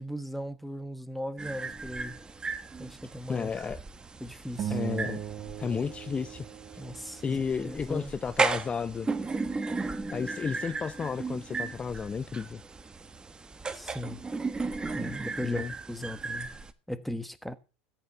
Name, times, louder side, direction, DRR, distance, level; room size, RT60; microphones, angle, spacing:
voice 1, 0.0-2.2 2.8-3.5 4.2-4.8 6.8-8.1 13.7-14.2 14.9-15.6 15.9-16.5 16.9-17.6, equal, ahead, 1.3 m, -38 dB
sound 1, 1.4-16.7, right 4 dB, 15° right, 1.4 m, -36 dB
voice 2, 3.3-3.8 4.7-5.2 5.6-6.5 7.2-9.1 10.1-12.6 15.4-15.7, left 6 dB, 25° left, 0.6 m, -32 dB
sound 2, 4.6-7.2, right 9 dB, 45° right, 2.1 m, -37 dB
14.0 x 9.0 x 6.7 m
hypercardioid pair, 90°, 5 cm